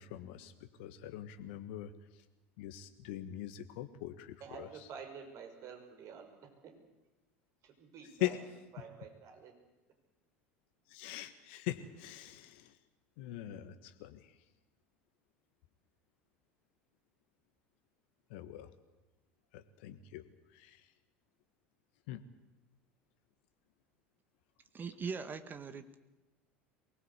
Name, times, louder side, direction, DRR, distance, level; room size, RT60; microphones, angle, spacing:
voice 1, 0.0-1.9 2.6-4.9 8.2-8.4 10.9-12.7 13.2-14.3 18.3-18.7 19.5-20.2 20.5-20.8 22.1-22.2, left 14 dB, 65° left, 10 dB, 1.5 m, -42 dB
voice 2, 4.4-6.7 7.6-8.4 8.7-9.5, right 6 dB, 50° right, 5 dB, 5.7 m, -49 dB
voice 3, 24.7-26.0, right 5 dB, 30° right, 10 dB, 1.9 m, -41 dB
23.5 x 19.5 x 8.3 m, 1.0 s
hypercardioid pair, 75°, 7 cm